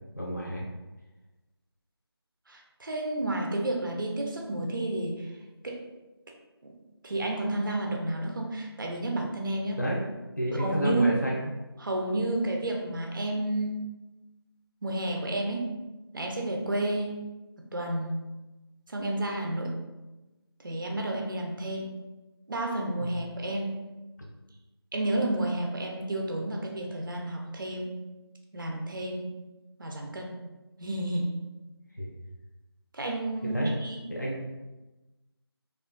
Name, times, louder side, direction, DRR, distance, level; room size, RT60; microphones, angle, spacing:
voice 1, 0.2-0.6 9.7-10.0 10.4-11.5 23.0-23.2 32.0-32.2 33.4-33.7 34.1-34.5, equal, 45° left, -4 dB, 0.7 m, -30 dB
voice 2, 2.5-5.3 5.6-5.8 6.6-6.7 7.0-9.8 10.6-11.1 11.8-13.8 14.8-15.7 16.1-17.2 17.7-18.3 18.9-19.7 20.6-21.9 22.5-23.9 24.9-28.0 28.5-29.3 29.8-30.4 30.8-31.4 32.9-34.1, right 1 dB, 55° right, 1 dB, 0.5 m, -31 dB
3.4 x 2.4 x 2.2 m, 1.1 s
figure-of-eight pair, 175°, 13 cm